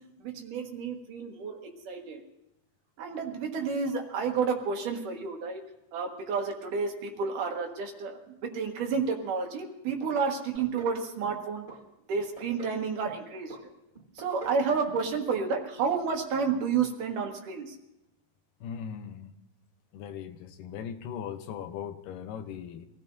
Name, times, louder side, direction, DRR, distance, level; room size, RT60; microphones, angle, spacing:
voice 1, 0.2-2.2 3.0-5.6 5.9-11.7 12.1-13.5 14.2-17.7, right 5 dB, 75° right, 2 dB, 3.2 m, -30 dB
sound 1, 10.5-11.0 11.2-11.8 12.1-12.8 13.0-13.6 13.9-14.6 14.9-15.1 15.3-15.4 15.8-15.9, right 5 dB, 15° right, 2.5 m, -44 dB
voice 2, 18.6-19.3 19.9-22.9, left 8 dB, 85° left, 8 dB, 2.5 m, -39 dB
26.0 x 16.5 x 2.7 m, 0.89 s
omnidirectional pair, 3.7 m